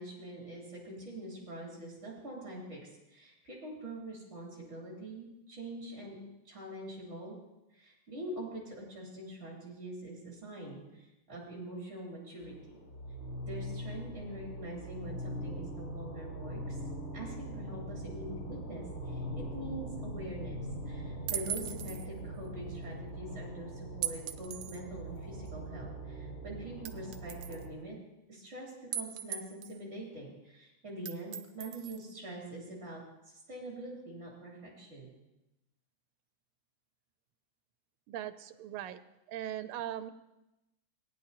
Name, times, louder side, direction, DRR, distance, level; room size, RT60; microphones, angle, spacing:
voice 1, 0.0-2.8 3.1-6.2 6.4-7.3 7.7-12.8 13.5-16.8 17.1-28.0 28.3-33.0 33.3-35.1, right 1 dB, 35° right, -3 dB, 3.4 m, -44 dB
sound 1, 12.4-27.7, right 1 dB, 35° left, 1.8 m, -42 dB
sound 2, 21.3-22.1 24.0-24.8 25.5-25.6 26.9-27.6 28.9-29.8 31.1-32.1, right 9 dB, 70° right, 1.2 m, -38 dB
voice 2, 38.1-39.0 39.3-40.1, right 11 dB, 90° right, 11 dB, 1.5 m, -39 dB
17.5 x 10.0 x 2.9 m, 0.94 s
omnidirectional pair, 2.3 m